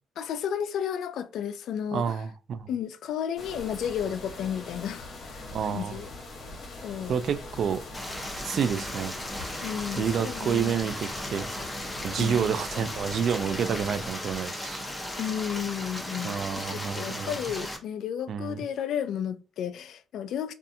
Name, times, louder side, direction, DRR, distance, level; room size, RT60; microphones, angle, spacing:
voice 1, 0.2-2.2 2.7-6.1 6.8-7.2 9.6-10.8 12.2-12.5 15.2-20.5, left 9 dB, 75° left, 0.3 m, -33 dB
voice 2, 1.9-2.7 5.5-6.0 7.1-7.8 8.4-9.1 10.0-11.5 12.0-14.8 16.2-17.3 18.3-18.6, right 7 dB, 65° right, 0.3 m, -29 dB
sound 1, 3.4-14.1, left 2 dB, 55° left, 1.0 m, -42 dB
Stream, 7.9-17.8, left 1 dB, 10° left, 0.7 m, -36 dB
2.5 x 2.4 x 2.7 m
cardioid pair, 90°, 0 cm